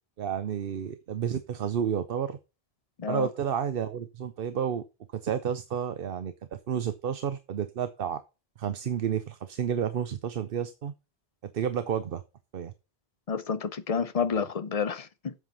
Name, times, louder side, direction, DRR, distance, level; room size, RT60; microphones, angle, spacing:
voice 1, 0.2-2.4 3.1-4.8 5.1-8.2 8.6-10.9 11.4-12.2 12.5-12.7, right 8 dB, 65° right, 0.9 m, -31 dB
voice 2, 3.0-3.3 13.3-15.3, left 6 dB, 40° left, 0.8 m, -29 dB
8.0 x 5.7 x 5.8 m
omnidirectional pair, 1.1 m